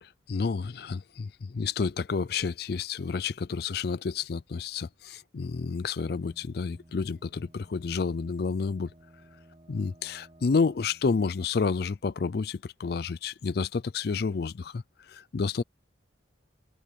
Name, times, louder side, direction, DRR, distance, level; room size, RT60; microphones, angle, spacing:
voice 1, 0.0-8.9 9.7-15.6, left 5 dB, 55° left, 0.4 m, -30 dB
sound 1, 5.9-12.5, right 1 dB, 30° right, 1.3 m, -57 dB
head